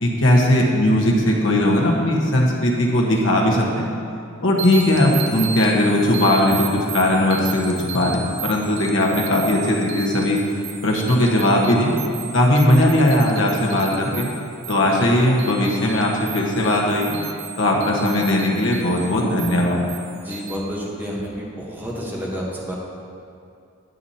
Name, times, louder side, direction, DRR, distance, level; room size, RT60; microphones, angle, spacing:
voice 1, 0.0-3.9 4.4-10.4 10.8-11.9 12.3-14.3 14.7-17.2 17.6-19.8, left 1 dB, 65° left, -2 dB, 1.3 m, -18 dB
sound 1, 4.6-20.6, right 7 dB, 65° right, 0.7 m, -35 dB
voice 2, 20.2-22.8, equal, 10° right, -4 dB, 1.1 m, -30 dB
10.5 x 9.2 x 2.9 m, 2.4 s
head